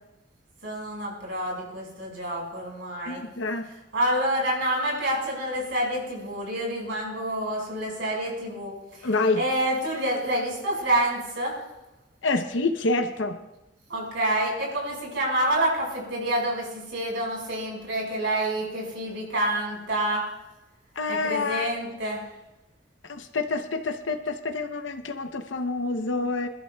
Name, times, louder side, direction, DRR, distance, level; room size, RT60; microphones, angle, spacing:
voice 1, 0.6-3.2 3.9-9.1 9.4-11.5 13.9-20.2 21.1-22.2, right 1 dB, 75° right, -1 dB, 5.4 m, -28 dB
voice 2, 3.1-3.7 9.0-9.4 12.2-13.4 21.0-21.8 23.1-26.5, left 3 dB, 80° left, 6 dB, 0.8 m, -27 dB
28.0 x 11.5 x 2.3 m, 0.99 s
head